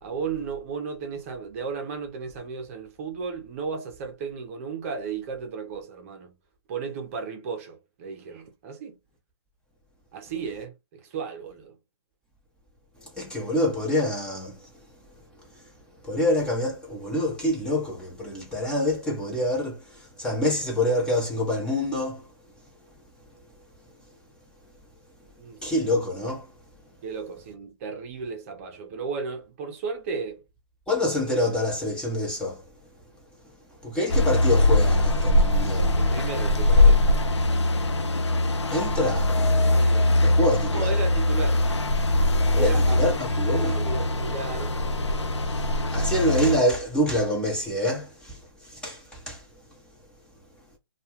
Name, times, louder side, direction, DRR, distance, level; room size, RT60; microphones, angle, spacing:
voice 1, 0.0-6.3 6.7-9.0 10.1-11.8 25.4-25.6 27.0-30.4 36.0-37.1 39.7-40.1 40.7-41.6 42.6-43.2 43.5-44.8, right 5 dB, 30° right, 0.7 m, -34 dB
voice 2, 13.2-14.7 16.0-22.3 25.6-26.5 30.9-32.7 33.8-36.0 38.7-39.3 40.2-41.0 42.5-43.8 45.4-45.6 45.9-49.4, left 1 dB, 5° left, 0.6 m, -26 dB
sound 1, 34.1-46.6, left 1 dB, 85° left, 0.6 m, -22 dB
2.3 x 2.3 x 2.8 m
hypercardioid pair, 140°, 14 cm